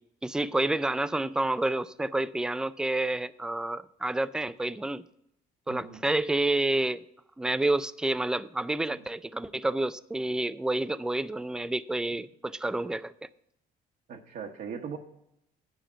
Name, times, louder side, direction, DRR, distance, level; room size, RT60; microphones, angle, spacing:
voice 1, 0.2-5.0 5.7-7.0 7.4-13.1, right 2 dB, 5° right, 0.3 m, -29 dB
voice 2, 5.7-6.0 14.1-15.0, right 6 dB, 60° right, 1.1 m, -39 dB
9.8 x 5.0 x 7.6 m
cardioid pair, 110°, 17 cm